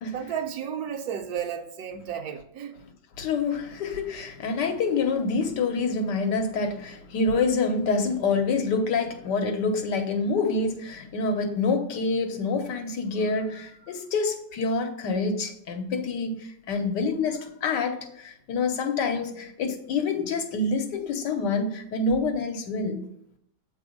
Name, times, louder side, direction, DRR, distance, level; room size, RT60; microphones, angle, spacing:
voice 1, 0.0-2.7, right 8 dB, 70° right, 1.1 m, -33 dB
voice 2, 3.2-23.0, left 4 dB, 85° left, 1.5 m, -27 dB
7.6 x 3.4 x 5.1 m
omnidirectional pair, 1.8 m